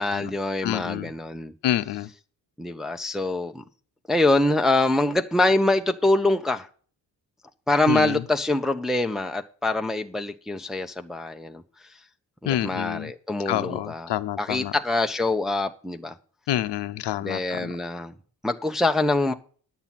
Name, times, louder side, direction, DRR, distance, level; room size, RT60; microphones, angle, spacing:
voice 1, 0.0-1.5 2.6-3.6 4.1-6.7 7.7-11.6 12.4-14.1 14.4-16.1 17.2-18.1 18.4-19.3, left 2 dB, ahead, 0.6 m, -24 dB
voice 2, 0.6-1.1 1.6-2.1 7.9-8.2 12.5-13.1 13.5-14.7 16.5-17.7, left 12 dB, 85° left, 0.7 m, -28 dB
10.5 x 7.3 x 5.8 m
wide cardioid pair, 130°, 40 cm